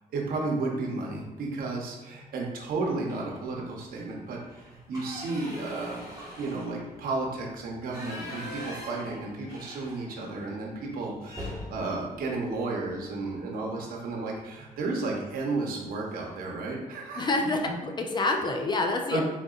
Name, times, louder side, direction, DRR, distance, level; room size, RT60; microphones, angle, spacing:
voice 1, 0.1-4.4 4.7-6.0 6.4-17.3 19.1-19.2, right 3 dB, 70° right, -1 dB, 0.9 m, -33 dB
sound 1, 3.0-3.5 3.9-4.0 4.4-10.4 10.7-10.8 11.2-13.4 14.7-15.0 15.4-15.5 15.8-16.4, left 1 dB, 25° right, 1.3 m, -43 dB
voice 2, 17.2-19.2, left 2 dB, 30° left, 3 dB, 0.4 m, -27 dB
3.8 x 3.8 x 2.4 m, 1.1 s
cardioid pair, 110°, 15 cm